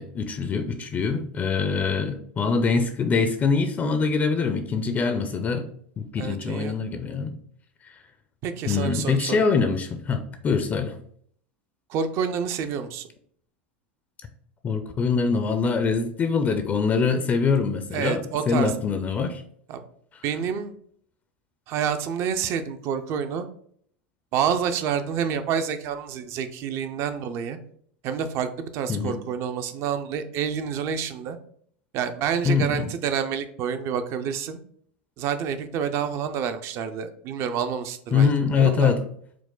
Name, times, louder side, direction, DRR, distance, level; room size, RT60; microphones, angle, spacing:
voice 1, 0.0-5.7 6.0-7.4 8.7-11.0 14.6-19.4 28.9-29.2 32.4-32.9 38.1-39.0, left 5 dB, 30° left, 8 dB, 0.5 m, -24 dB
voice 2, 6.2-6.8 8.4-9.5 11.9-13.1 17.9-18.7 19.7-19.8 20.2-20.7 21.7-23.5 24.3-27.6 28.0-31.4 31.9-34.6 35.2-38.9, right 7 dB, 50° right, 9 dB, 0.5 m, -28 dB
4.6 x 2.1 x 3.8 m, 0.62 s
hypercardioid pair, 95°, 6 cm